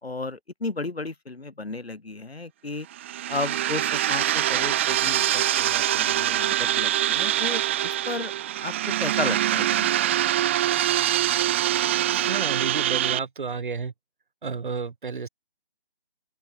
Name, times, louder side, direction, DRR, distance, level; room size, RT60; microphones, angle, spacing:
voice 1, 0.0-2.9 3.3-8.3 8.6-9.9, left 3 dB, 90° left, 5.8 m, -33 dB
sound 1, 2.9-13.2, right 12 dB, 10° right, 1.0 m, -24 dB
voice 2, 12.1-13.9 14.4-15.3, right 5 dB, 55° right, 4.2 m, -31 dB
open air
figure-of-eight pair, 165°, 30 cm